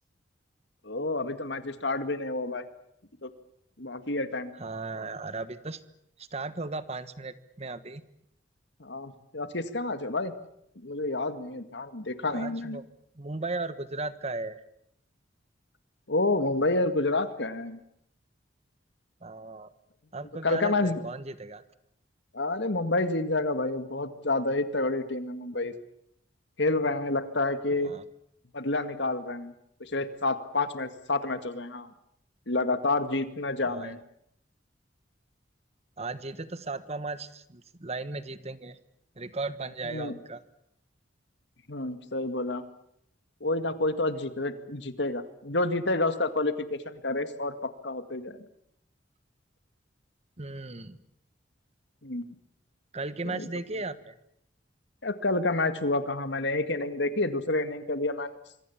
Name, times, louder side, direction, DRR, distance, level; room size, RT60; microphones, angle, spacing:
voice 1, 0.8-2.7 3.2-3.3 3.8-4.5 8.8-10.3 10.8-12.8 16.1-17.8 20.4-21.0 22.3-25.7 26.6-27.9 28.5-29.5 29.8-31.9 32.5-34.0 39.8-40.1 41.7-42.6 43.4-48.4 52.0-52.3 53.2-53.5 55.0-58.3, left 2 dB, 65° left, 10 dB, 2.1 m, -29 dB
voice 2, 4.5-5.8 6.2-8.0 12.3-12.8 13.1-14.6 19.2-19.7 20.1-21.6 27.8-28.0 33.6-34.0 36.0-38.8 39.1-40.4 50.4-51.0 52.9-54.1, right 3 dB, 35° right, 13 dB, 1.4 m, -36 dB
26.0 x 24.0 x 7.3 m, 0.73 s
head